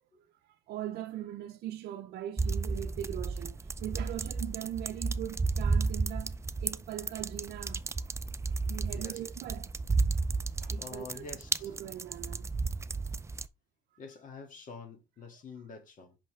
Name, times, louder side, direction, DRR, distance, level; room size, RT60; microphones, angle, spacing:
voice 1, 0.2-7.9 8.7-9.8 10.6-11.2 11.6-12.5, right 12 dB, 70° right, 0.6 m, -40 dB
sound 1, 2.4-13.5, right 3 dB, 15° right, 0.4 m, -33 dB
voice 2, 10.8-11.7 14.0-16.2, left 4 dB, 50° left, 2.2 m, -47 dB
5.7 x 5.7 x 3.2 m
cardioid pair, 110°, 17 cm